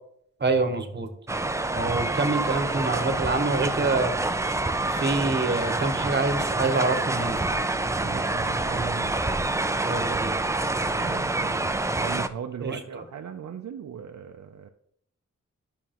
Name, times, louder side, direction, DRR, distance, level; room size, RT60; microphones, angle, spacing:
voice 1, 0.4-1.1 1.7-4.2 4.9-7.4 9.8-10.3 12.6-13.0, right 3 dB, 35° right, 7 dB, 1.0 m, -26 dB
sound 1, 1.3-12.3, right 2 dB, 10° right, 0.3 m, -27 dB
voice 2, 8.0-9.2 10.9-11.7 12.0-14.7, right 7 dB, 65° right, 5 dB, 0.5 m, -38 dB
11.0 x 5.9 x 2.9 m, 0.69 s
wide cardioid pair, 100°, 31 cm